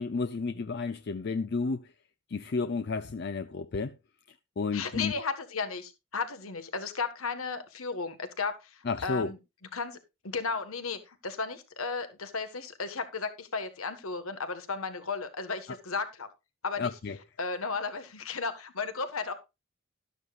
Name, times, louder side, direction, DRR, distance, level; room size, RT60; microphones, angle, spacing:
voice 1, 0.0-1.9 2.3-4.0 4.3-5.1 8.8-9.3 16.8-17.2, left 4 dB, 50° left, 0.4 m, -32 dB
voice 2, 4.7-9.4 9.7-10.0 10.2-16.3 16.6-16.9 17.4-19.3, left 4 dB, 85° left, 1.5 m, -34 dB
12.5 x 12.0 x 2.4 m
head